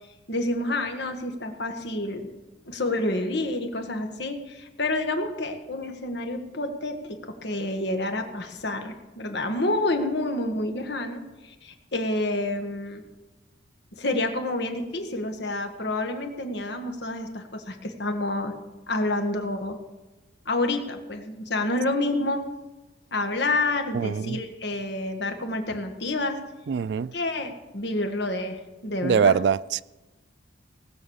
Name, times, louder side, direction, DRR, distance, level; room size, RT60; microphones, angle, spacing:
voice 1, 0.3-2.3 2.7-13.0 13.9-18.6 18.9-19.8 20.4-22.4 23.1-26.4 27.1-29.4, left 2 dB, 60° left, 5 dB, 1.6 m, -28 dB
voice 2, 23.9-24.4 26.7-27.1 29.0-29.8, right 6 dB, 65° right, 19 dB, 0.3 m, -23 dB
19.0 x 6.5 x 7.1 m, 1.1 s
head